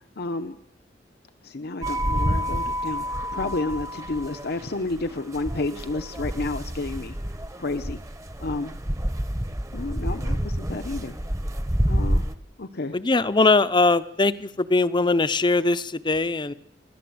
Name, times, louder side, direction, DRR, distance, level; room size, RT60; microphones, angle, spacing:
voice 1, 0.2-0.6 1.4-3.0 3.3-7.1 7.6-8.0 8.4-8.7 9.7-11.2 11.9-12.2 12.6-13.0, left 2 dB, 60° left, 8 dB, 0.9 m, -30 dB
sound 1, 1.8-12.4, equal, 20° right, 1.0 m, -28 dB
voice 2, 12.9-16.5, left 3 dB, 25° left, 14 dB, 0.7 m, -21 dB
27.5 x 12.5 x 7.9 m, 0.78 s
head